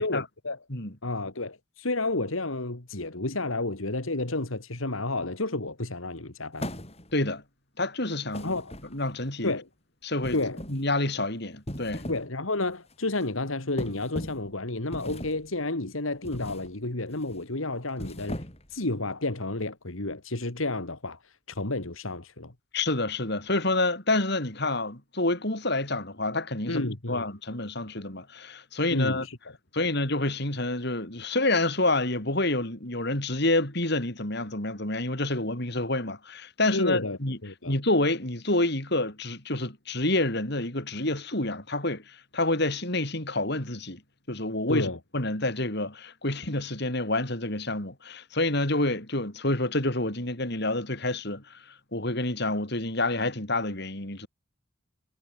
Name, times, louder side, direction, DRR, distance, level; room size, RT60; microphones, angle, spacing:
voice 1, 0.0-0.6 1.0-6.7 8.4-8.7 9.4-9.7 10.3-10.6 12.1-18.4 18.7-21.2 21.5-22.5 26.7-27.2 28.9-29.4 29.8-29.9 36.7-37.8 44.7-45.0, left 2 dB, 80° left, 2.5 m, -31 dB
sound 1, 6.6-7.3 8.3-9.2 10.2-10.9 11.5-12.3 12.7-12.9 13.8-14.5 14.9-15.5 16.2-16.7 17.1-17.4 17.9-18.8, equal, 30° left, 7.9 m, -38 dB
voice 2, 7.1-7.4 7.8-8.6 8.9-9.5 10.0-10.4 10.7-12.1 22.7-29.3 29.7-37.4 37.7-44.0 44.3-51.6 51.9-54.3, left 2 dB, 55° left, 4.8 m, -28 dB
head